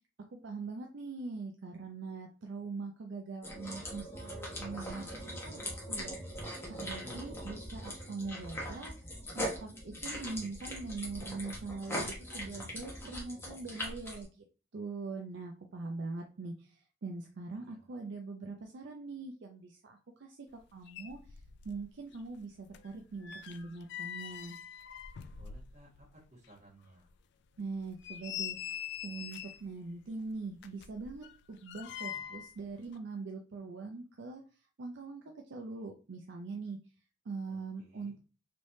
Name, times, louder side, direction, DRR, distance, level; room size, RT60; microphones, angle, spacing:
voice 1, 0.3-6.1 6.7-8.9 9.3-14.4 14.7-20.4 20.7-21.4 21.6-24.6 27.6-28.6 29.0-34.4 34.8-36.8 37.3-38.2, right 3 dB, 65° right, 2 dB, 0.4 m, -42 dB
sound 1, 3.4-14.3, equal, 15° left, 1.0 m, -41 dB
voice 2, 6.7-7.6 17.6-17.8 25.4-26.1 26.3-27.1 37.5-38.2, right 1 dB, 40° right, -4 dB, 1.5 m, -56 dB
sound 2, 20.6-20.7 20.9-21.9 22.1-26.1 26.4-26.5 27.1-27.2 27.7-29.7 30.5-32.5 32.8-33.0, left 9 dB, 60° left, 0.3 m, -44 dB
3.3 x 3.0 x 2.7 m, 0.35 s
head